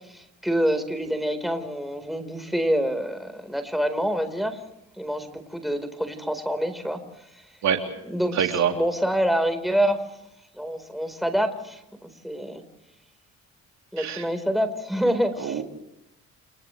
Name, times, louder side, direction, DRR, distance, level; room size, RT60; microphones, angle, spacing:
voice 1, 0.1-4.6 5.0-7.0 8.1-10.0 10.5-12.6 13.9-15.6, equal, ahead, 7 dB, 4.3 m, -26 dB
voice 2, 8.3-8.7 14.0-14.2 15.4-15.6, right 8 dB, 65° right, 3 dB, 3.2 m, -24 dB
30.0 x 29.0 x 3.3 m, 0.87 s
cardioid pair, 90°, 30 cm